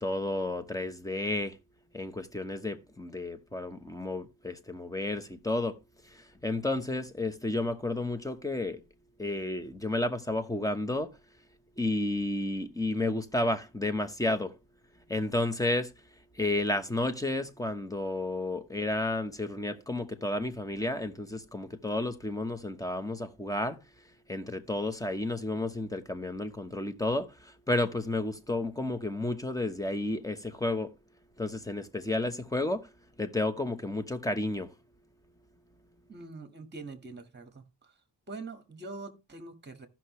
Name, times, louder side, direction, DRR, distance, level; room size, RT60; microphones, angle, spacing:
voice 1, 0.0-1.6 1.9-5.8 6.1-8.8 9.2-11.1 11.8-14.5 15.1-15.9 16.4-23.8 24.3-30.9 31.4-32.9 33.2-34.7, left 2 dB, 5° left, 1.0 m, -31 dB
voice 2, 36.1-37.9 38.3-39.9, right 3 dB, 20° right, 1.7 m, -44 dB
15.0 x 5.8 x 3.1 m
cardioid pair, 95°, 46 cm